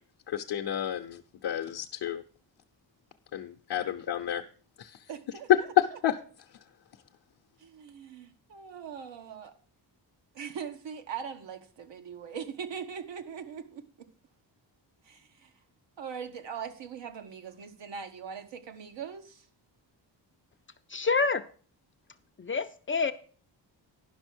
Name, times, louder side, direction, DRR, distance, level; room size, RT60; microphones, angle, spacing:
voice 1, 0.3-2.2 3.3-4.4 4.8-5.1 5.5-6.2, left 11 dB, 60° left, 0.8 m, -29 dB
voice 2, 5.1-5.5 7.6-9.5 10.3-14.1 15.1-15.5 16.0-19.4, right 7 dB, 80° right, 1.3 m, -41 dB
voice 3, 20.9-21.4 22.4-23.1, left 4 dB, 30° left, 0.4 m, -27 dB
11.0 x 5.8 x 6.2 m
wide cardioid pair, 135°, 43 cm